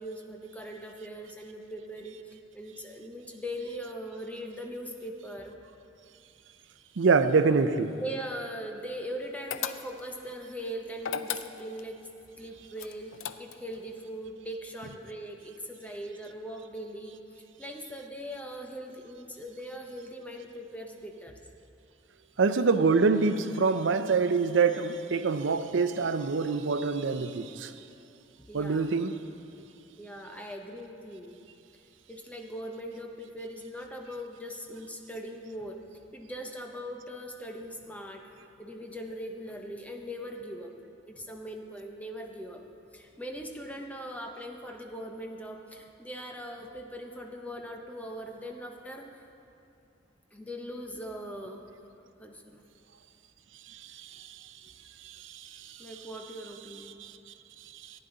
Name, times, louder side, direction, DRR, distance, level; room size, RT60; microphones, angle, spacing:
voice 1, 0.0-2.2 2.5-5.5 8.0-12.0 12.4-17.2 17.6-21.4 28.5-28.9 30.0-31.4 32.1-35.8 36.1-40.7 41.1-42.6 42.9-49.1 50.3-51.6 52.2-52.6 55.8-57.0, equal, 10° left, 2 dB, 0.8 m, -40 dB
voice 2, 7.0-7.9 22.4-27.7 28.5-29.1 55.0-55.5 57.0-57.1, right 4 dB, 75° right, 10 dB, 0.5 m, -25 dB
sound 1, 9.5-10.2 11.0-11.9 12.8-13.8, left 9 dB, 90° left, 0.4 m, -35 dB
14.5 x 9.9 x 4.0 m, 2.8 s
head